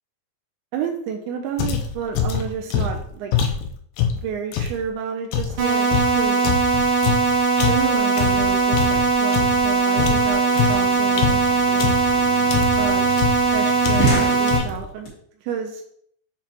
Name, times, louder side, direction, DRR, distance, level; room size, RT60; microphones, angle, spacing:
voice 1, 0.7-3.3 4.1-5.9 6.2-6.4 7.7-11.9 12.8-13.1 13.5-15.1 15.4-15.8, right 7 dB, 85° right, 3 dB, 2.8 m, -30 dB
sound 1, 1.6-4.8 5.3-9.7 10.0-12.2 12.5-12.9 13.2-13.5 13.8-14.2 14.5-14.9, left 7 dB, 80° left, 2.4 m, -24 dB
sound 2, 5.6-14.6, right 4 dB, 60° right, 1.5 m, -20 dB
sound 3, 9.9-15.1, right 2 dB, 45° left, 1.4 m, -30 dB
8.1 x 4.4 x 2.9 m, 0.66 s
omnidirectional pair, 5.3 m